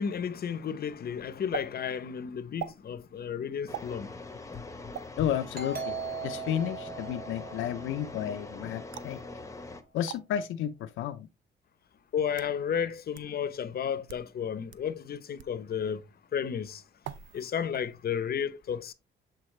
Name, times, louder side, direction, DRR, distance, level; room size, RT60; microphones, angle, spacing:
voice 1, 0.0-4.1 5.2-5.3 12.1-16.0 16.3-16.8 17.3-18.9, left 7 dB, 50° left, 0.7 m, -32 dB
sound 1, 1.5-1.7 2.6-2.8 3.7-3.9 4.9-5.1 6.0-6.2 8.9-9.2 10.0-10.2 11.2-11.3 12.1-12.5 13.1-13.2 14.0-14.3 14.7-14.8 15.4-15.6 17.0-17.5 17.7-18.1, right 10 dB, 75° right, 0.6 m, -41 dB
sound 2, 3.7-9.8, left 2 dB, 15° left, 0.9 m, -43 dB
voice 2, 5.2-5.9 6.2-9.2 9.9-11.3, left 10 dB, 85° left, 0.6 m, -32 dB
Doorbell, 5.5-8.9, right 5 dB, 50° right, 3.7 m, -39 dB
7.9 x 4.0 x 3.1 m
cardioid pair, 90°, 20 cm